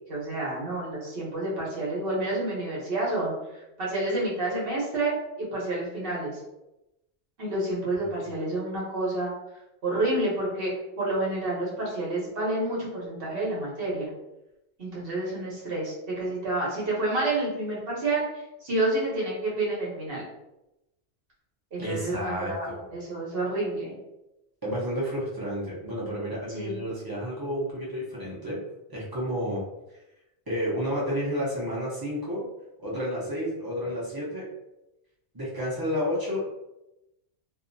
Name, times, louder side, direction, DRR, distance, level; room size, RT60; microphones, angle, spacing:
voice 1, 0.1-6.4 7.4-9.3 9.8-10.7 11.0-14.1 14.8-20.2 21.7-23.9 26.5-26.8, right 2 dB, 55° right, -4 dB, 1.0 m, -29 dB
voice 2, 21.8-22.9 24.6-28.6 28.9-29.6 30.5-32.4 32.8-34.5 35.3-36.4, equal, 25° right, -7 dB, 0.7 m, -31 dB
2.6 x 2.2 x 2.5 m, 0.92 s
omnidirectional pair, 1.2 m